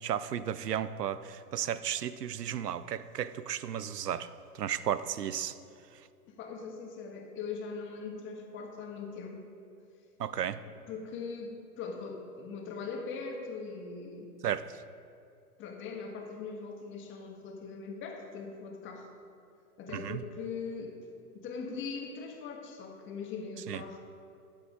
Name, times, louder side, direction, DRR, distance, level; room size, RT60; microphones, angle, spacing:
voice 1, 0.0-4.3 4.6-5.5 10.2-10.6 14.4-14.6 19.9-20.2 23.7-23.8, right 9 dB, 80° right, 15 dB, 0.6 m, -34 dB
voice 2, 6.3-9.4 10.6-14.3 15.6-19.1 19.8-21.0 21.3-24.0, left 5 dB, 25° left, 2 dB, 1.5 m, -41 dB
13.5 x 8.6 x 3.7 m, 2.4 s
figure-of-eight pair, 110°, 47 cm